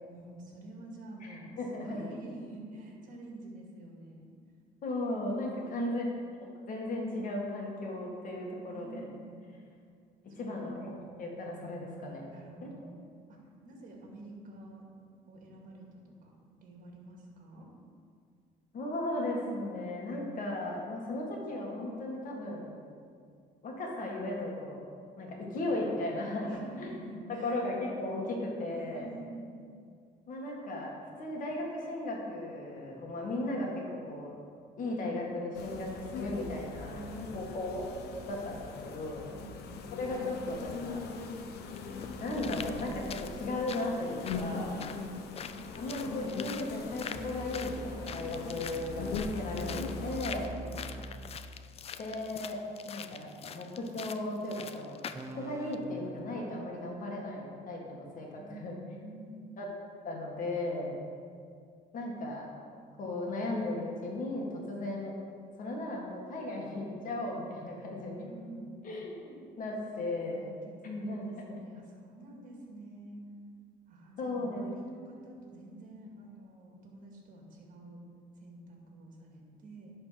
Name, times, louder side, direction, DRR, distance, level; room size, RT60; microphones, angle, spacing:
voice 1, 0.1-4.3 5.6-6.2 8.7-9.5 10.3-10.8 12.3-12.9 13.3-13.4 13.6-14.8 15.3-16.3 16.6-17.7 26.4-27.7 28.7-29.5 36.9-37.7 39.3-39.6 50.3-50.9 58.4-59.6 68.0-68.9 70.0-73.2 73.9-78.0 78.4-79.9, right 2 dB, 50° right, -1 dB, 2.2 m, -48 dB
voice 2, 1.2-2.1 4.8-6.0 6.4-9.1 10.4-12.3 12.6-12.7 18.7-22.8 23.6-24.8 25.2-26.5 26.8-27.0 27.4-29.1 30.3-30.9 31.2-34.4 34.8-37.0 37.3-37.9 38.3-39.3 40.0-41.0 42.2-44.7 45.8-50.5 52.0-52.6 52.9-58.8 59.6-59.7 60.0-60.9 61.9-62.5 63.0-65.1 65.6-68.3 68.8-70.5 70.8-71.3 74.2-74.7, left 2 dB, 50° left, -1 dB, 2.0 m, -36 dB
sound 1, 35.5-50.5, left 4 dB, 75° left, 0.9 m, -41 dB
sound 2, 41.7-55.3 55.7-55.8, left 7 dB, 35° left, 0.4 m, -45 dB
sound 3, 41.9-43.3 47.1-51.3 55.1-55.8, right 1 dB, 15° right, 0.8 m, -43 dB
11.0 x 4.3 x 5.9 m, 2.2 s
cardioid pair, 110°, 17 cm